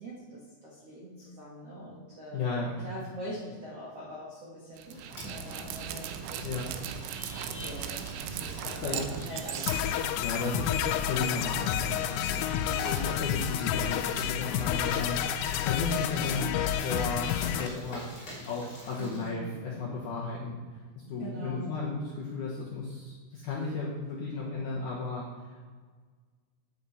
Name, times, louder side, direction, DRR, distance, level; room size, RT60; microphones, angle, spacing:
voice 1, 0.0-2.4 2.8-10.0 11.2-11.5 12.6-13.1 16.1-16.5 19.0-19.6 21.1-21.7, equal, 60° right, -7 dB, 1.6 m, -43 dB
voice 2, 2.3-2.8 6.4-6.7 8.6-9.0 10.2-18.1 18.4-20.6 21.0-25.2 25.5-25.6, left 3 dB, 70° left, -5 dB, 1.9 m, -34 dB
sound 1, 4.8-19.3, left 1 dB, 25° left, 3.0 m, -45 dB
Dog, 4.8-10.6, right 9 dB, 90° right, 3.1 m, -38 dB
sound 2, 9.7-17.7, left 10 dB, 85° left, 2.9 m, -30 dB
8.9 x 8.8 x 4.2 m, 1.5 s
omnidirectional pair, 5.3 m